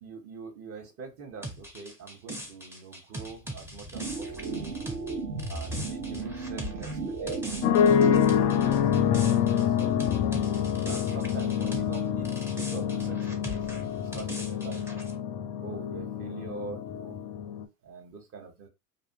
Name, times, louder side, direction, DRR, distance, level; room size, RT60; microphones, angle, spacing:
voice 1, 0.0-4.8 5.5-10.0 10.9-14.9 15.6-17.2 17.8-18.7, right 5 dB, 30° right, 4 dB, 0.9 m, -44 dB
sound 1, 1.4-12.0 12.3-15.1, equal, 5° right, 0.6 m, -41 dB
sound 2, 3.9-9.0, right 3 dB, 55° right, 1.1 m, -35 dB
sound 3, 7.6-17.6, left 8 dB, 40° left, 0.4 m, -26 dB
2.6 x 2.5 x 2.5 m, 0.24 s
hypercardioid pair, 90°, 48 cm